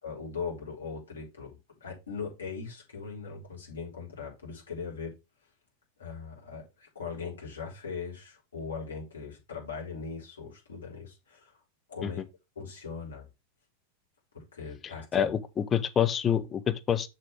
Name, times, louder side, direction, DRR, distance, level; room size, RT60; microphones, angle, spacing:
voice 1, 0.0-5.1 6.0-11.6 11.9-12.2 12.6-13.3 14.3-15.4, left 5 dB, 70° left, 3.6 m, -40 dB
voice 2, 14.8-17.1, left 9 dB, 25° left, 0.8 m, -27 dB
6.7 x 6.6 x 3.4 m
figure-of-eight pair, 90°, 0 cm